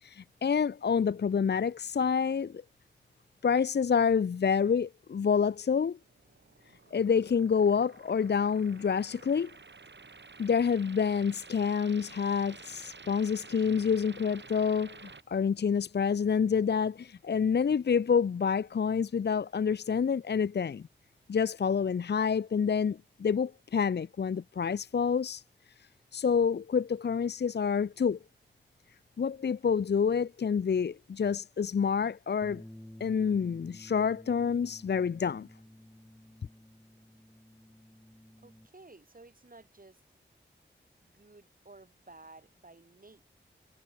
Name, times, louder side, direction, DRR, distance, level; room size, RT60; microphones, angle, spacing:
voice 1, 0.0-2.6 3.4-6.0 6.9-9.5 10.4-20.8 21.3-25.4 26.1-28.2 29.2-32.6 33.0-35.5, left 6 dB, 60° left, 0.5 m, -28 dB
sound 1, 6.0-15.2, right 4 dB, 65° right, 3.2 m, -51 dB
Bass guitar, 32.4-38.7, left 1 dB, 10° left, 2.9 m, -52 dB
voice 2, 38.4-40.0 41.0-43.2, right 3 dB, 45° right, 6.5 m, -54 dB
wide cardioid pair, 65°, 20 cm